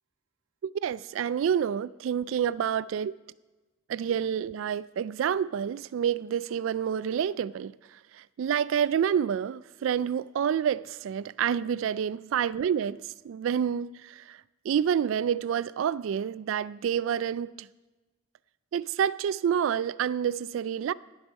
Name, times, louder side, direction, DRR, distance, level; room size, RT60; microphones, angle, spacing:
voice 1, 0.6-3.1 3.9-7.7 8.1-17.7 18.7-20.9, right 8 dB, 70° right, 0.3 m, -28 dB
17.5 x 8.1 x 5.3 m
head